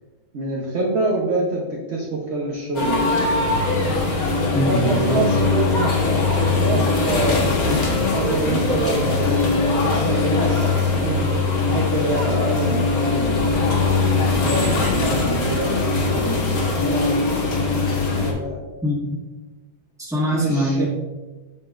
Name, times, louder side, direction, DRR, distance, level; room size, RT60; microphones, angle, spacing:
voice 1, 0.3-3.2 4.5-11.3 11.6-13.8 14.3-17.2 18.1-18.6 20.3-20.9, right 2 dB, 50° right, -2 dB, 0.8 m, -26 dB
sound 1, 2.7-18.3, left 3 dB, 55° left, 1.6 m, -21 dB
voice 2, 4.5-5.2 6.7-6.8 18.8-19.2 20.0-20.9, equal, ahead, -5 dB, 1.3 m, -23 dB
8.4 x 6.8 x 2.5 m, 1.2 s
omnidirectional pair, 2.1 m